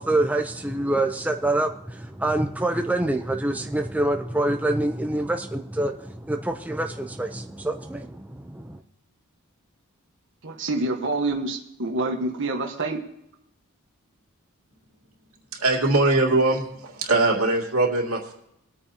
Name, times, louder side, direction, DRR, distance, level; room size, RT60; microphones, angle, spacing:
voice 1, 0.0-8.8, right 1 dB, 5° right, 4 dB, 0.5 m, -26 dB
voice 2, 10.4-13.0, right 2 dB, 55° right, 2 dB, 1.4 m, -27 dB
voice 3, 15.5-18.3, right 2 dB, 80° right, 0 dB, 2.5 m, -21 dB
22.0 x 8.9 x 2.9 m, 0.81 s
head